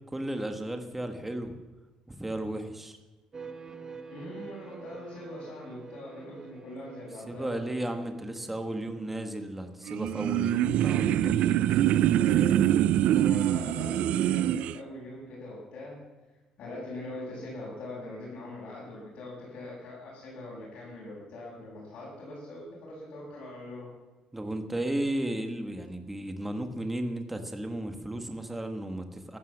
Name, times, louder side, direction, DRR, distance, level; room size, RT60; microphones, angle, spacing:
voice 1, 0.1-1.6 2.1-3.0 7.3-11.6 24.3-29.4, right 1 dB, 10° right, 6 dB, 1.5 m, -34 dB
sound 1, 3.3-10.0, right 5 dB, 25° right, 1.1 m, -48 dB
voice 2, 4.1-7.6 12.2-16.0 16.6-23.9, left 2 dB, 55° left, -8 dB, 7.5 m, -42 dB
sound 2, 9.9-14.8, right 12 dB, 70° right, 0.4 m, -24 dB
15.0 x 12.5 x 7.3 m, 1.1 s
cardioid pair, 155°, 2 cm